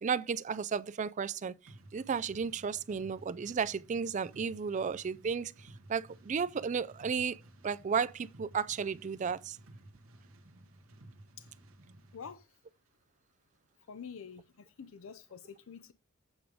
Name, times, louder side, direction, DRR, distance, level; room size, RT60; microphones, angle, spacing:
voice 1, 0.0-1.5 1.9-5.5 5.9-9.6, right 6 dB, 35° right, 0.4 m, -33 dB
sound 1, 1.7-12.4, right 1 dB, 75° right, 1.4 m, -56 dB
voice 2, 12.1-12.4 13.9-15.9, left 6 dB, 70° left, 0.5 m, -47 dB
8.2 x 5.1 x 4.7 m
head